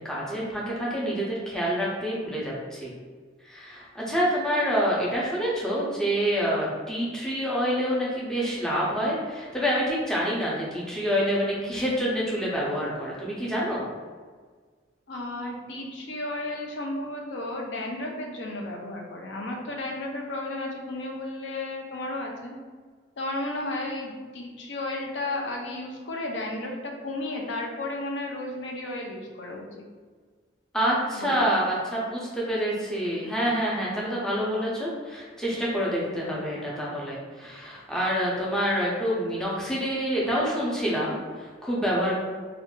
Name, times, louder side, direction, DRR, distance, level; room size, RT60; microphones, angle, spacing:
voice 1, 0.0-2.9 3.4-13.9 30.7-42.2, equal, 5° left, -6 dB, 0.5 m, -27 dB
voice 2, 15.1-22.6 23.2-29.6 31.1-31.5, left 2 dB, 70° left, 1 dB, 0.5 m, -33 dB
2.6 x 2.3 x 3.6 m, 1.5 s
head